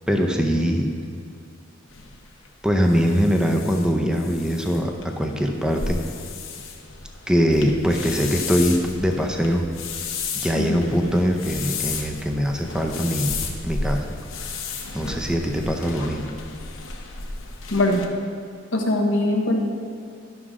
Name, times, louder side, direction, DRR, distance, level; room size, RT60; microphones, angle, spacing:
voice 1, 0.1-0.9 2.6-6.0 7.3-9.6 10.4-13.4 13.6-14.1 14.9-16.3, equal, 5° right, 2 dB, 0.5 m, -22 dB
sound 1, 1.9-18.0, left 4 dB, 85° left, 0.9 m, -33 dB
voice 2, 17.7-18.0 18.7-19.6, left 1 dB, 70° left, 1 dB, 1.2 m, -21 dB
11.5 x 6.1 x 3.7 m, 2.4 s
head